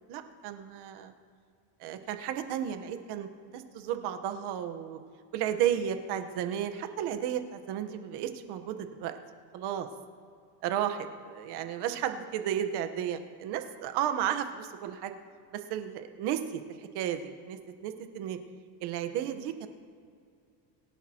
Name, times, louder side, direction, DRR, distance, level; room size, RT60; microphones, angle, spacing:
voice 1, 0.1-1.1 1.8-5.0 5.3-9.1 9.5-9.9 10.6-15.2 15.5-18.4 18.8-19.7, right 10 dB, 55° right, 8 dB, 1.2 m, -33 dB
24.5 x 10.5 x 3.0 m, 2.3 s
cardioid pair, 140°, 47 cm